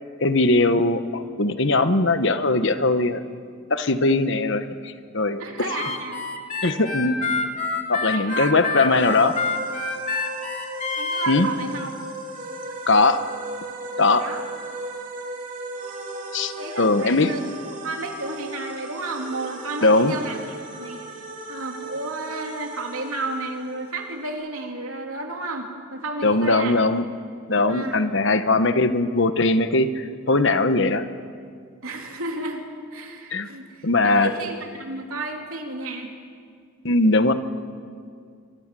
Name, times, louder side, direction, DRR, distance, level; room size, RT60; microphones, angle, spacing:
voice 1, 0.2-3.2 3.7-5.4 6.6-7.2 7.9-9.3 11.3-11.5 12.9-13.2 14.0-14.3 16.3-17.3 19.8-20.2 26.2-27.0 27.5-31.0 33.3-33.5 33.8-34.3 36.8-37.3, left 2 dB, 55° left, 10 dB, 1.2 m, -20 dB
voice 2, 5.4-6.2 8.1-9.2 11.0-11.9 14.2-14.4 16.6-17.4 17.7-20.4 20.8-21.0 21.5-26.8 27.7-28.0 31.8-32.6 32.9-36.1, right 2 dB, 75° right, 2 dB, 3.2 m, -32 dB
Harmonica, 5.7-11.3, left 4 dB, 35° left, 2.5 m, -28 dB
sound 1, 8.9-24.3, right 2 dB, 35° right, 3.3 m, -36 dB
25.0 x 23.0 x 7.7 m, 2.1 s
head